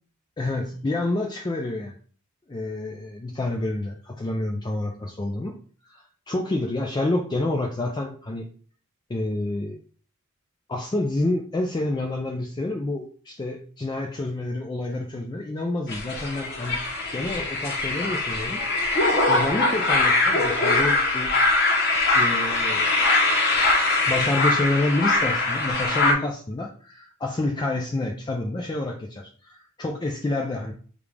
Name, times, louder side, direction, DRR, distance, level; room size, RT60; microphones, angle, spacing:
voice 1, 0.4-2.0 2.5-5.6 5.9-8.5 9.1-9.8 10.7-18.6 19.3-21.4 22.1-22.9 23.9-30.7, left 2 dB, 20° left, 2 dB, 0.4 m, -28 dB
sound 1, 15.9-26.1, left 2 dB, 50° left, 1.0 m, -22 dB
5.1 x 2.5 x 3.2 m, 0.43 s
head